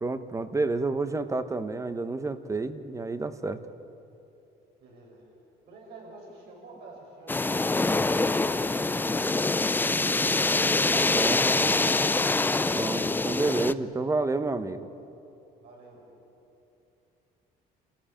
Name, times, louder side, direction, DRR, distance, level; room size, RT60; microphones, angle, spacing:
voice 1, 0.0-3.6 11.1-11.7 12.7-14.9, right 3 dB, 20° right, 11 dB, 1.1 m, -30 dB
voice 2, 4.8-5.3 5.7-9.3 15.6-16.1, right 2 dB, 80° right, -2 dB, 7.0 m, -49 dB
sound 1, 7.3-13.7, left 3 dB, 10° left, 0.5 m, -25 dB
28.0 x 14.5 x 8.7 m, 2.8 s
cardioid pair, 110°, 17 cm